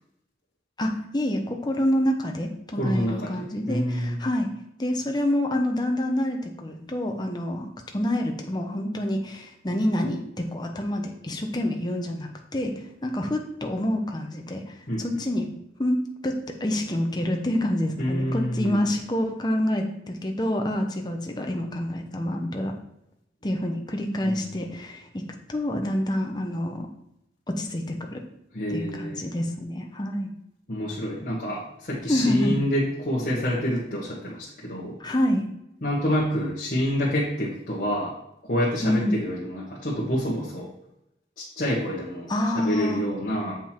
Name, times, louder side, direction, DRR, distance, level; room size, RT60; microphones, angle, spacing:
voice 1, 0.8-4.5 4.8-10.2 10.5-15.5 15.8-22.7 23.4-25.2 25.5-26.9 27.5-28.2 28.7-30.3 32.1-32.6 35.0-35.5 38.8-39.2 42.3-43.0, left 1 dB, 25° left, 3 dB, 0.9 m, -27 dB
voice 2, 2.7-4.2 14.9-15.2 18.0-18.8 24.2-24.4 28.5-29.2 30.7-35.0 35.8-38.2 38.4-40.7 41.4-42.3 42.5-43.6, equal, 50° left, -6 dB, 1.5 m, -27 dB
7.5 x 5.4 x 4.4 m, 0.79 s
head